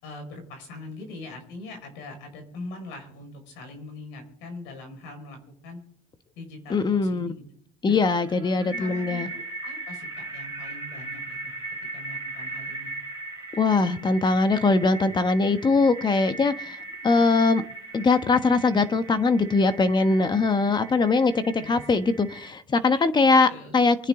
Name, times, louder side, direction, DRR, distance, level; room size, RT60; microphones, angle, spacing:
voice 1, 0.0-5.8 6.4-7.4 7.9-8.0 8.3-11.5 11.9-12.9 21.6-22.1 22.8-23.1 23.5-23.7, left 2 dB, 70° left, 5 dB, 5.8 m, -42 dB
voice 2, 6.7-7.3 7.8-9.3 13.6-16.8 17.0-17.6 17.9-21.3 21.7-24.0, left 3 dB, 25° left, 10 dB, 1.4 m, -21 dB
sound 1, 8.2-22.5, right 2 dB, 15° right, 4.8 m, -38 dB
24.5 x 9.9 x 3.9 m, 0.62 s
supercardioid pair, 100°, 19 cm